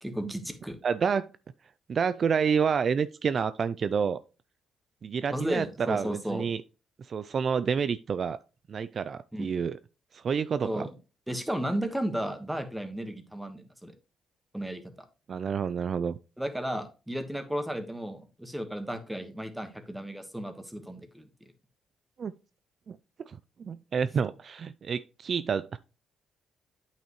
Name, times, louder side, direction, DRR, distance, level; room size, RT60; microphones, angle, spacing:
voice 1, 0.0-0.8 5.3-6.4 9.3-9.5 10.6-10.9 11.3-13.9 14.5-14.9 16.4-21.5, equal, 5° right, 1.3 m, -34 dB
voice 2, 0.8-1.3 1.9-4.2 5.0-6.6 7.0-8.4 8.7-9.7 10.1-10.9 15.3-16.2 22.2-22.3 22.9-23.0 23.3-25.8, right 6 dB, 50° right, 0.3 m, -29 dB
8.9 x 5.7 x 3.1 m
cardioid pair, 90°, 0 cm